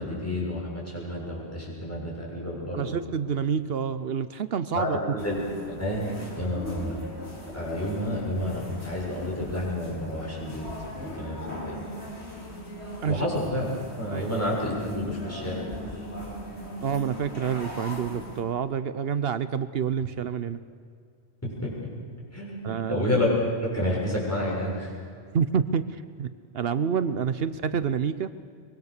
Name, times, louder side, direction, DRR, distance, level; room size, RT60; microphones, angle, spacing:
voice 1, 0.0-3.0 4.7-6.1 6.4-7.0 7.5-10.7 11.0-11.8 13.0-13.7 14.0-15.6 21.4-21.7 22.3-23.3 23.6-24.9, left 1 dB, 15° left, -5 dB, 6.9 m, -30 dB
voice 2, 2.7-5.0 13.0-13.3 14.1-14.3 16.8-20.6 22.6-23.0 25.3-26.3 26.5-28.3, right 7 dB, 65° right, 13 dB, 0.9 m, -28 dB
sound 1, 5.2-18.4, equal, 80° left, 3.7 m, -39 dB
24.0 x 22.0 x 6.7 m, 2.2 s
omnidirectional pair, 1.1 m